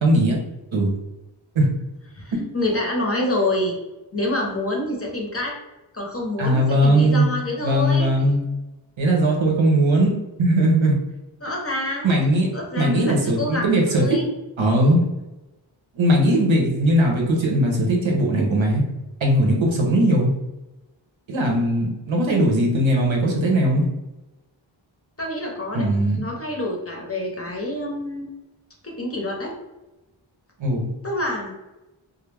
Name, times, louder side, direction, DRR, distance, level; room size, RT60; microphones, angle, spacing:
voice 1, 0.0-0.4 0.7-0.9 1.5-1.7 6.4-7.3 7.6-8.5 9.0-10.1 10.4-11.0 12.0-12.5 12.8-14.2 14.6-15.0 15.9-18.8 19.2-20.3 21.3-23.8 25.7-26.2 30.6-30.9, right 1 dB, 75° right, -1 dB, 0.7 m, -19 dB
voice 2, 2.1-3.8 4.1-5.5 5.9-8.1 11.4-12.2 12.5-14.3 25.2-28.3 28.8-29.5 31.0-31.5, left 1 dB, 30° left, -1 dB, 0.6 m, -27 dB
2.2 x 2.0 x 3.2 m, 1.0 s
wide cardioid pair, 50°, 47 cm